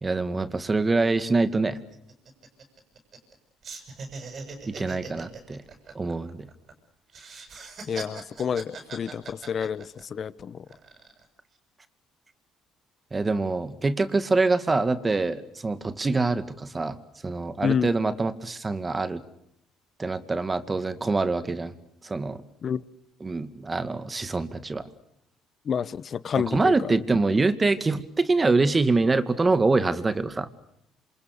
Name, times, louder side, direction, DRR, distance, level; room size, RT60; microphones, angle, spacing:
voice 1, 0.0-1.8 4.7-5.6 5.9-6.5 13.1-17.0 17.2-19.2 20.0-21.7 22.0-22.4 23.2-24.8 26.5-30.5, right 3 dB, 25° right, 12 dB, 2.2 m, -25 dB
sound 1, 0.8-0.9 1.2-1.4 1.7-3.4 3.6-6.7 7.1-10.2 10.7-11.2, right 4 dB, 50° right, 7.3 m, -41 dB
voice 2, 7.9-10.6 17.6-17.9 22.6-22.8 25.6-27.0, left 7 dB, 50° left, 18 dB, 1.1 m, -29 dB
27.5 x 27.5 x 6.7 m, 0.79 s
cardioid pair, 90°, 0 cm